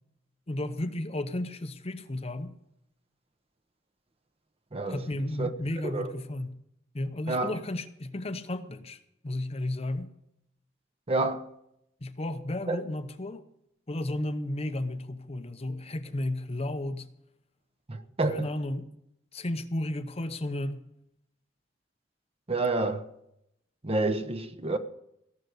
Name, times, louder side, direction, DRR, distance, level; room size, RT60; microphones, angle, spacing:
voice 1, 0.5-2.6 4.9-6.6 6.9-9.0 9.2-10.1 12.0-13.5 13.9-17.1 18.3-18.9 19.3-20.9, left 1 dB, 35° left, 0.8 m, -33 dB
voice 2, 4.7-5.0 5.4-5.5 5.8-6.1 7.3-7.6 11.1-11.5 12.7-12.8 17.9-18.5 22.5-23.1 23.8-24.8, right 2 dB, 35° right, 0.9 m, -28 dB
17.5 x 6.6 x 8.0 m
head